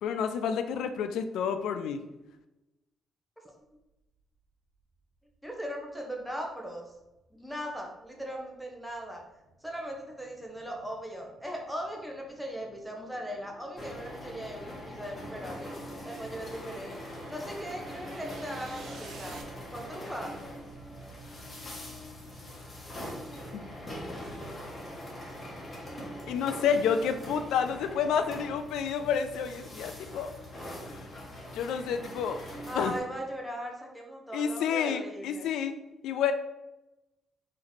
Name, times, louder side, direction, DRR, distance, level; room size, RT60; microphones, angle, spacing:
voice 1, 0.0-2.0 23.5-23.6 26.3-30.3 30.9-31.0 31.5-32.4 32.8-32.9 34.3-35.8 36.0-36.3, left 7 dB, 85° left, 9 dB, 0.3 m, -29 dB
sound 1, 4.7-4.8 5.3-19.4, right 3 dB, 65° right, 0.8 m, -53 dB
voice 2, 5.4-6.9 7.3-9.2 9.6-15.7 16.0-16.9 17.3-19.4 19.7-20.4 32.7-35.5, equal, ahead, 0 dB, 1.1 m, -39 dB
sound 2, 13.8-33.0, equal, 30° left, 1.5 m, -42 dB
3.9 x 3.1 x 4.1 m, 0.98 s
cardioid pair, 90°, 0 cm